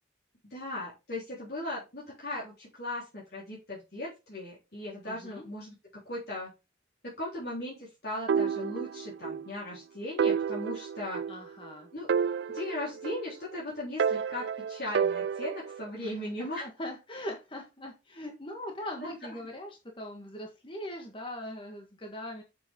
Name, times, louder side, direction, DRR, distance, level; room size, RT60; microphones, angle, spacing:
voice 1, 0.5-5.7 6.1-6.5 7.0-11.2 11.9-12.1 12.5-16.7 19.0-19.1, left 1 dB, 55° left, -6 dB, 3.8 m, -38 dB
voice 2, 5.0-5.5 11.3-11.9 16.0-22.4, left 1 dB, 25° left, 2 dB, 1.4 m, -41 dB
sound 1, 8.3-9.5 9.7-9.8 10.2-11.7 12.1-13.5 14.0-15.8, right 6 dB, 65° right, 0.3 m, -30 dB
7.6 x 7.0 x 3.6 m, 0.26 s
head